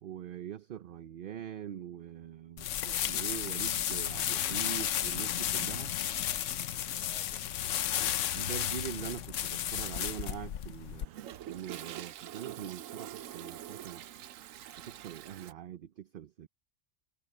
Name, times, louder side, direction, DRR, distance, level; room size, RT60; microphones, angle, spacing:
voice 1, 0.0-5.9 8.3-14.0 14.8-16.5, right 10 dB, 55° right, 0.6 m, -43 dB
sound 1, 2.6-11.0, left 11 dB, 70° left, 1.0 m, -33 dB
voice 2, 6.0-6.5 6.9-8.5, equal, ahead, 5.6 m, -59 dB
Toilet flush, 10.2-15.5, right 12 dB, 80° right, 1.1 m, -45 dB
omnidirectional pair, 1.4 m